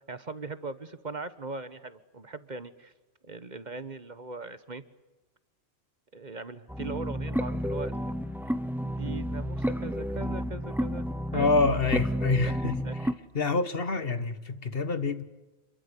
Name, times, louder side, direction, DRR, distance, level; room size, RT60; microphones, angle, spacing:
voice 1, 0.1-2.9 3.2-4.8 6.1-8.1 8.8-11.1 11.3-11.5 12.4-12.5 12.8-13.0, right 3 dB, 45° right, 1.4 m, -40 dB
sound 1, 6.7-13.1, equal, ahead, 1.2 m, -31 dB
voice 2, 11.3-12.8 13.3-15.2, left 3 dB, 60° left, 1.7 m, -27 dB
28.0 x 22.0 x 8.4 m
omnidirectional pair, 1.1 m